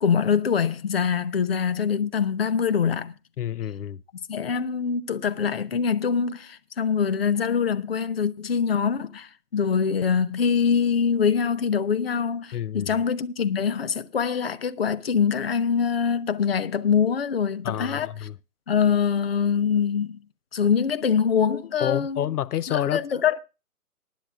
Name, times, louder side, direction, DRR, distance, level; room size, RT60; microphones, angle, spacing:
voice 1, 0.0-3.1 4.3-18.1 18.7-20.2 20.5-22.2 22.7-23.4, left 6 dB, 40° left, 0.7 m, -24 dB
voice 2, 3.4-4.0 12.5-13.0 17.6-18.4 21.8-23.0, left 11 dB, 80° left, 0.6 m, -28 dB
19.5 x 10.5 x 2.4 m
hypercardioid pair, 170°, 46 cm